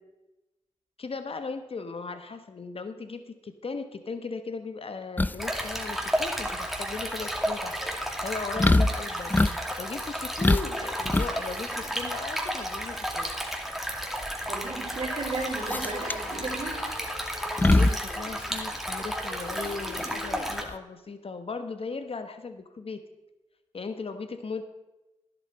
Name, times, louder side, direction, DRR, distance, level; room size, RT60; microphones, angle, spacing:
voice 1, 1.0-7.8 8.2-9.3 9.8-13.3 17.6-23.0 23.7-24.6, left 4 dB, 50° left, 9 dB, 1.2 m, -37 dB
sound 1, 5.2-20.7, left 2 dB, 15° left, 0.4 m, -28 dB
Stream, 5.4-20.6, equal, ahead, 2.4 m, -33 dB
voice 2, 14.5-16.7, right 3 dB, 55° right, -1 dB, 4.2 m, -34 dB
sound 2, 15.1-20.6, left 3 dB, 70° left, 2.2 m, -44 dB
11.5 x 11.0 x 4.4 m, 0.99 s
supercardioid pair, 45°, 13 cm